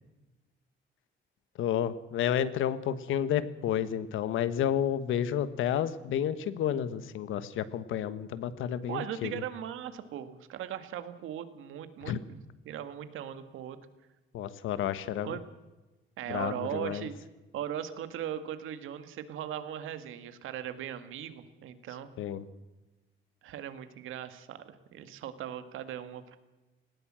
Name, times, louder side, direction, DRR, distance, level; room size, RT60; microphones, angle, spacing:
voice 1, 1.6-9.3 12.0-12.2 14.3-15.4 16.3-17.1 22.2-22.5, left 10 dB, 75° left, 14 dB, 1.4 m, -31 dB
voice 2, 8.9-12.4 12.7-13.8 15.2-15.4 16.2-17.1 17.5-22.1 23.4-26.4, right 10 dB, 75° right, 10 dB, 2.0 m, -39 dB
19.0 x 18.0 x 7.6 m, 1.1 s
cardioid pair, 150°, 21 cm